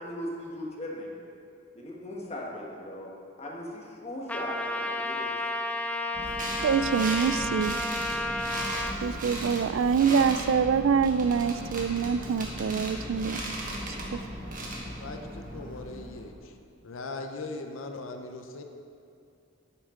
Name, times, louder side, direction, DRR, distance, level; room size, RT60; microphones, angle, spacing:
voice 1, 0.0-1.3 1.7-3.1 3.4-5.3, left 1 dB, 35° left, -2 dB, 1.4 m, -38 dB
Trumpet, 4.3-9.0, left 1 dB, 5° left, 0.4 m, -32 dB
sound 1, 6.1-16.3, right 1 dB, 45° right, 1.4 m, -36 dB
voice 2, 6.6-7.8 9.0-13.4 14.1-14.2, right 6 dB, 75° right, 14 dB, 0.3 m, -25 dB
voice 3, 15.0-16.5 16.8-18.6, left 3 dB, 85° left, 5 dB, 0.6 m, -39 dB
10.5 x 8.6 x 3.7 m, 2.5 s
head